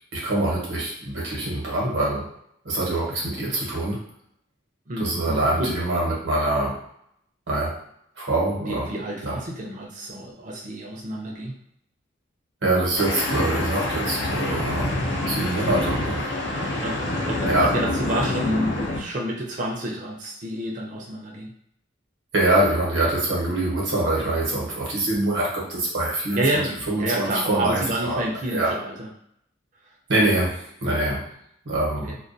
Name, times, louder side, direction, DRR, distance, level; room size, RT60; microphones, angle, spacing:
voice 1, 0.1-2.3 2.6-4.1 5.0-6.8 7.5-7.8 8.2-8.8 9.3-9.4 12.6-16.3 17.5-17.7 22.3-26.4 26.9-28.2 28.5-28.7 30.1-31.3 31.7-32.2, right 1 dB, 70° right, -3 dB, 0.9 m, -24 dB
voice 2, 4.9-6.1 8.6-11.6 16.8-21.5 26.4-29.1 30.3-30.4 32.1-32.2, right 1 dB, 40° right, -1 dB, 0.5 m, -29 dB
sound 1, 13.0-19.0, left 1 dB, 65° left, 0.5 m, -26 dB
2.2 x 2.2 x 2.5 m, 0.72 s
head